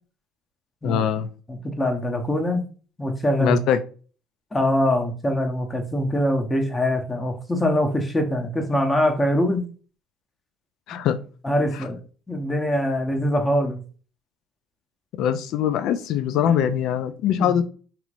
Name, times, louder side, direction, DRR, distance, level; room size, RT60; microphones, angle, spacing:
voice 1, 0.8-1.3 3.4-3.8 10.9-11.2 11.7-11.8 15.2-17.6, left 9 dB, 65° left, 0.4 m, -22 dB
voice 2, 1.5-2.6 3.0-3.6 4.5-9.6 11.4-12.0 12.3-13.8 16.5-16.7 17.3-17.5, left 1 dB, 20° left, 0.9 m, -23 dB
3.0 x 2.9 x 2.5 m
hypercardioid pair, 60°, 0 cm